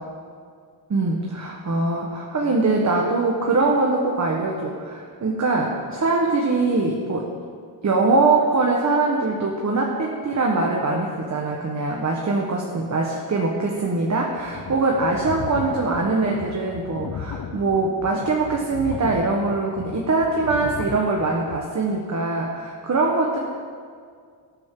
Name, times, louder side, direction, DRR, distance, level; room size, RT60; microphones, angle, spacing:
voice 1, 0.9-7.3 7.8-23.4, right 3 dB, 40° right, -1 dB, 1.3 m, -22 dB
sound 1, 14.3-21.6, left 7 dB, 55° left, 0.8 m, -36 dB
18.5 x 8.8 x 3.8 m, 2.1 s
wide cardioid pair, 140°, 45 cm